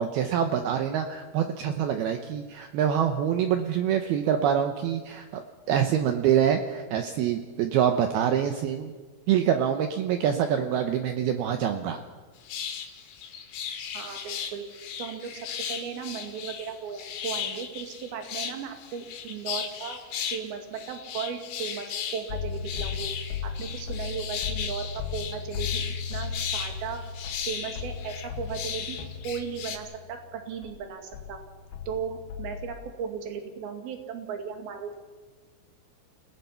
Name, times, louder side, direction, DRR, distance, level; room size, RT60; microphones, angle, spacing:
voice 1, 0.0-5.4 5.7-8.9 9.3-12.0, right 9 dB, 85° right, 6 dB, 2.2 m, -25 dB
sound 1, 12.5-29.8, left 8 dB, 85° left, 4.7 m, -36 dB
voice 2, 13.9-15.3 15.7-20.0 20.3-23.1 23.4-25.8 26.1-27.0 27.5-29.0 29.2-31.4 31.9-35.0, right 7 dB, 55° right, 5 dB, 3.7 m, -36 dB
sound 2, 22.3-30.8 31.1-32.7, left 6 dB, 70° left, 3.4 m, -36 dB
29.5 x 18.0 x 5.8 m, 1.4 s
omnidirectional pair, 5.8 m